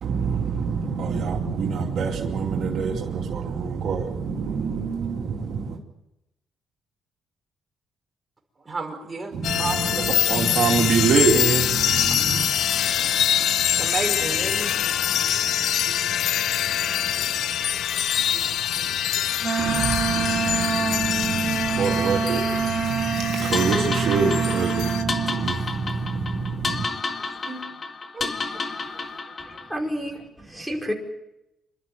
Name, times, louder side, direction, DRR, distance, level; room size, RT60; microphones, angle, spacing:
voice 1, 0.0-5.8 9.3-12.5 19.6-26.8, right 5 dB, 70° right, 2.8 m, -26 dB
voice 2, 8.6-10.5 13.4-16.8 17.2-20.6 22.6-22.7 27.2-27.6 28.1-29.6, right 3 dB, 25° right, 5.2 m, -37 dB
sound 1, 9.4-25.0, left 10 dB, 80° left, 0.9 m, -24 dB
Wind instrument woodwind instrument, 19.4-25.5, right 7 dB, 50° right, 1.4 m, -27 dB
sound 2, 23.5-29.8, left 4 dB, 40° left, 2.0 m, -31 dB
voice 3, 29.5-30.9, equal, ahead, 5.0 m, -30 dB
27.5 x 12.5 x 9.3 m
cardioid pair, 110°, 0 cm